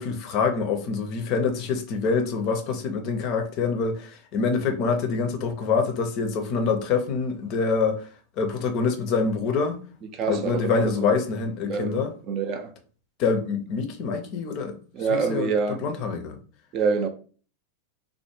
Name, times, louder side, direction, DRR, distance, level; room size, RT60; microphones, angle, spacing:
voice 1, 0.0-8.1 8.4-9.8 10.3-12.1 13.2-14.8 15.1-16.4, left 5 dB, 40° left, 0.5 m, -25 dB
voice 2, 10.1-10.9 11.7-12.0 12.3-12.7 14.9-15.8 16.7-17.1, right 5 dB, 35° right, 0.4 m, -26 dB
3.3 x 2.0 x 3.0 m
figure-of-eight pair, 90°, 0 cm